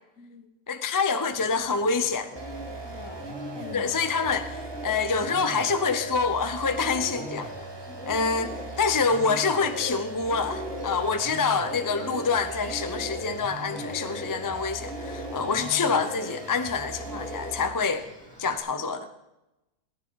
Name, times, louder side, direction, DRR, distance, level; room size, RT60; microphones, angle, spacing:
voice 1, 0.2-0.5 2.8-3.9 7.9-8.1 15.4-15.5, left 5 dB, 55° left, 8 dB, 1.4 m, -45 dB
voice 2, 0.7-2.3 3.7-4.6 4.8-7.7 8.1-18.1 18.4-19.1, left 5 dB, 25° left, 9 dB, 0.4 m, -26 dB
Bird, 1.3-18.6, equal, 5° left, 2.4 m, -40 dB
sound 1, 2.4-17.8, right 2 dB, 20° right, 0.8 m, -40 dB
18.5 x 9.9 x 4.7 m, 0.96 s
omnidirectional pair, 1.7 m